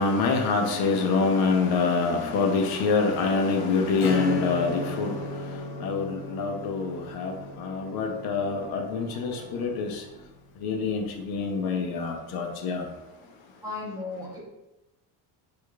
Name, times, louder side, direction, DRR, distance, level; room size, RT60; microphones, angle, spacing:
voice 1, 0.0-5.4 5.8-10.0 10.6-12.8, left 4 dB, 70° left, 0.6 m, -26 dB
Acoustic guitar / Strum, 4.0-10.2, left 2 dB, 85° left, 0.9 m, -34 dB
voice 2, 13.6-14.4, left 3 dB, 10° right, 0.7 m, -35 dB
4.7 x 2.4 x 2.3 m
cardioid pair, 160°, 39 cm